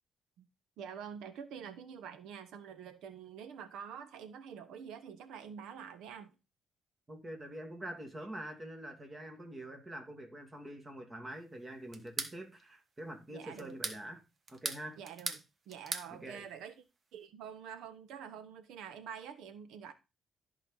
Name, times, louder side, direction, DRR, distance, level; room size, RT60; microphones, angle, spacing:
voice 1, 0.8-6.3 13.3-13.8 15.0-16.7 17.1-19.9, right 7 dB, 85° right, 1.1 m, -47 dB
voice 2, 7.1-14.2 14.5-15.0 16.2-16.4, right 1 dB, 25° right, 2.5 m, -45 dB
sound 1, 11.9-12.4 13.6-14.0 14.5-15.4 15.7-16.1, right 4 dB, 40° right, 1.2 m, -38 dB
13.5 x 4.5 x 4.0 m
cardioid pair, 90°, 0 cm